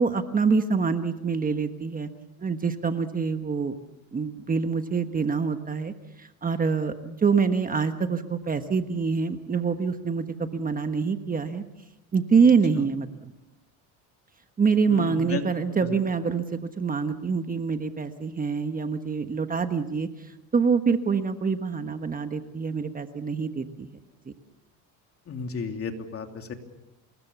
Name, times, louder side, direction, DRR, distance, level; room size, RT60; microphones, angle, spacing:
voice 1, 0.0-2.1 2.4-3.7 4.1-11.6 12.1-13.1 14.6-20.1 20.5-23.9, right 5 dB, 20° right, 8 dB, 1.3 m, -25 dB
voice 2, 14.9-15.4 25.3-26.5, left 5 dB, 35° left, 5 dB, 3.0 m, -33 dB
27.0 x 20.5 x 7.1 m, 0.93 s
cardioid pair, 120°, 38 cm